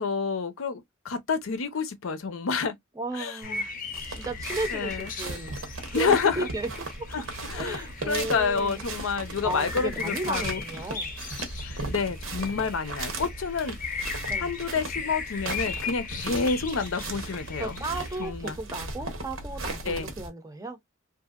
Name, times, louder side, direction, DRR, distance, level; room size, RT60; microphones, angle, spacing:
voice 1, 0.0-2.7 3.1-3.4 4.7-5.1 5.9-6.5 7.1-10.6 11.6-14.0 14.4-17.8 18.2-18.6 19.8-20.1, left 5 dB, 90° left, 0.6 m, -29 dB
voice 2, 3.0-3.7 4.1-5.6 5.9-6.7 7.5-8.8 9.4-11.1 14.3-14.5 17.6-20.8, right 2 dB, 15° right, 0.6 m, -34 dB
sound 1, 3.4-18.3, left 5 dB, 45° left, 0.6 m, -38 dB
sound 2, 3.9-20.3, right 2 dB, 90° right, 1.0 m, -37 dB
2.8 x 2.6 x 2.3 m
head